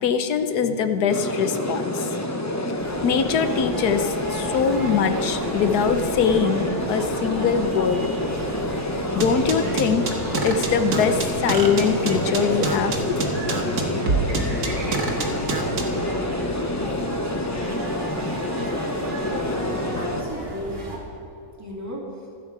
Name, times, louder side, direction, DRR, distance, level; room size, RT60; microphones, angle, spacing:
voice 1, 0.0-2.1 3.0-8.1 9.1-10.0 10.4-13.2 13.7-13.8, left 6 dB, 90° left, 8 dB, 1.4 m, -23 dB
sound 1, 1.1-20.2, left 1 dB, 15° left, 0.7 m, -28 dB
sound 2, 2.8-21.0, right 1 dB, 30° right, 2.7 m, -35 dB
sound 3, 9.2-15.8, right 4 dB, 75° right, 2.1 m, -25 dB
voice 2, 19.6-21.0 21.6-22.0, left 1 dB, 10° right, -4 dB, 2.7 m, -36 dB
26.0 x 8.7 x 4.7 m, 2.8 s
omnidirectional pair, 1.6 m